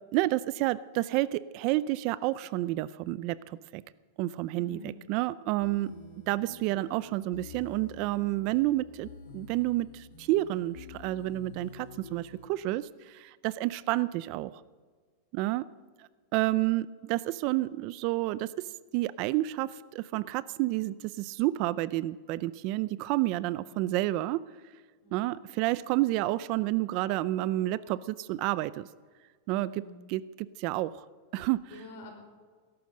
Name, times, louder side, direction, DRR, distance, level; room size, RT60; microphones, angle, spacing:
voice 1, 0.1-3.8 4.2-5.9 6.3-9.1 9.3-14.5 15.3-15.7 16.0-18.7 18.9-24.5 25.1-28.9 29.5-29.8 30.1-31.1 31.3-31.6, right 17 dB, 40° right, 18 dB, 0.4 m, -30 dB
voice 2, 4.5-5.0 5.7-6.0 23.5-23.9 25.0-25.4 29.5-29.9 31.7-32.2, left 3 dB, 55° left, 2 dB, 5.2 m, -48 dB
sound 1, 5.6-12.5, left 4 dB, 80° left, 2.9 m, -49 dB
17.5 x 11.5 x 6.5 m, 1.5 s
supercardioid pair, 165°, 0 cm